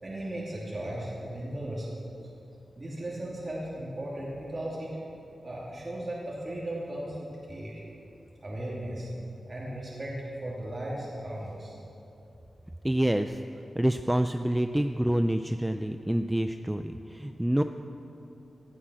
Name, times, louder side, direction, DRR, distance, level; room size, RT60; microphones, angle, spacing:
voice 1, 0.0-1.9 2.8-4.9 5.4-7.8 8.4-9.1 9.5-10.1 10.4-11.8, right 1 dB, 30° right, -6 dB, 2.7 m, -36 dB
voice 2, 12.8-13.4 13.7-17.6, right 1 dB, 5° right, 7 dB, 0.4 m, -27 dB
17.5 x 11.5 x 6.3 m, 2.8 s
wide cardioid pair, 145°, 0 cm